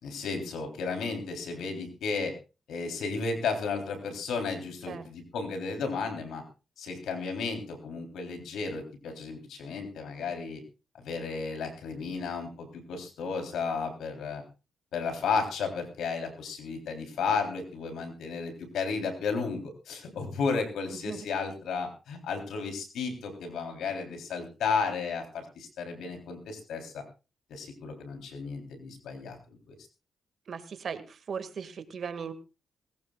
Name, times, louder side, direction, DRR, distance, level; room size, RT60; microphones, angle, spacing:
voice 1, 0.0-2.3 2.7-6.4 6.8-10.6 11.0-14.4 14.9-27.0 27.5-29.4 29.7-29.8, left 5 dB, 85° left, 4 dB, 3.5 m, -33 dB
voice 2, 20.9-21.3 30.5-32.3, right 6 dB, 60° right, 9 dB, 2.0 m, -38 dB
20.5 x 17.0 x 2.4 m, 0.31 s
cardioid pair, 70°, 0 cm